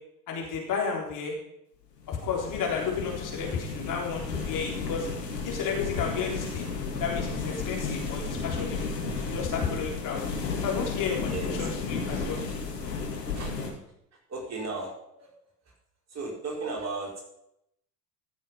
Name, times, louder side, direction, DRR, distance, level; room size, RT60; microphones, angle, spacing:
voice 1, 0.3-1.3 2.1-5.1 5.4-6.7 7.0-8.9 9.3-10.2 10.6-12.4, left 6 dB, 40° left, -1 dB, 3.9 m, -32 dB
sound 1, 2.0-13.7, left 4 dB, 75° left, 2.6 m, -33 dB
voice 2, 11.2-11.7 13.3-13.5 14.3-14.9 15.2-15.3 15.6-15.7 16.1-17.2, right 3 dB, 30° right, -1 dB, 4.5 m, -35 dB
14.5 x 7.2 x 5.7 m, 0.79 s
figure-of-eight pair, 80°, 50 cm